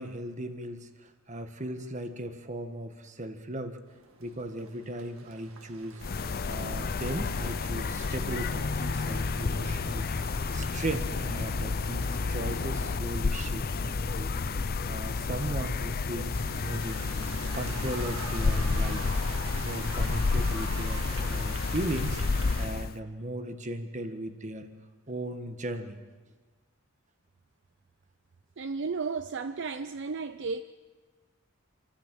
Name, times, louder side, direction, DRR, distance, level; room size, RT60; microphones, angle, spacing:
voice 1, 0.0-3.8 4.2-6.0 6.4-10.1 10.5-14.3 14.8-17.2 17.5-19.1 19.6-22.2 22.6-24.7 25.1-26.0, right 1 dB, 35° right, 1.5 m, -37 dB
sound 1, 3.9-22.7, right 4 dB, 75° right, 2.0 m, -46 dB
sound 2, 6.0-23.0, left 4 dB, 45° left, 0.5 m, -30 dB
sound 3, 6.9-14.7, left 1 dB, 5° left, 2.1 m, -47 dB
voice 2, 28.6-30.6, right 4 dB, 55° right, 0.5 m, -33 dB
26.5 x 14.5 x 7.5 m
head